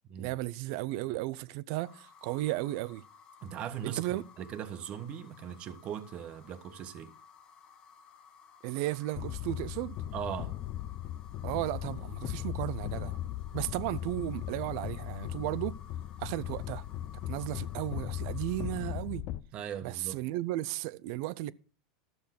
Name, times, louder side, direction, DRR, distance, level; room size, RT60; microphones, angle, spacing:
voice 1, 0.2-3.0 3.8-4.2 8.6-10.0 11.4-13.2 13.5-15.8 16.2-16.8 17.3-19.3 19.8-21.5, right 17 dB, 60° right, 0.5 m, -34 dB
sound 1, 1.8-19.2, left 6 dB, 35° left, 1.3 m, -57 dB
voice 2, 3.4-7.1 10.1-10.6 19.5-20.2, right 9 dB, 45° right, 1.2 m, -39 dB
sound 2, 9.1-19.4, left 13 dB, 50° left, 0.6 m, -38 dB
12.5 x 6.9 x 5.9 m
hypercardioid pair, 100°, 3 cm